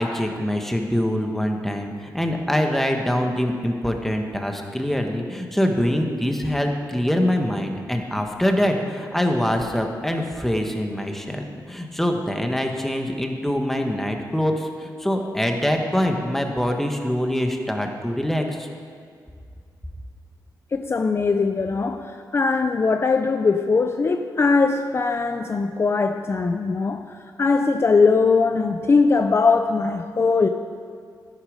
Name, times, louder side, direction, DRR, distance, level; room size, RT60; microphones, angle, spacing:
voice 1, 0.0-18.7, equal, 5° left, 3 dB, 1.5 m, -24 dB
voice 2, 20.7-30.5, left 4 dB, 35° left, 7 dB, 0.5 m, -20 dB
12.5 x 11.5 x 5.2 m, 2.2 s
cardioid pair, 90°, 7 cm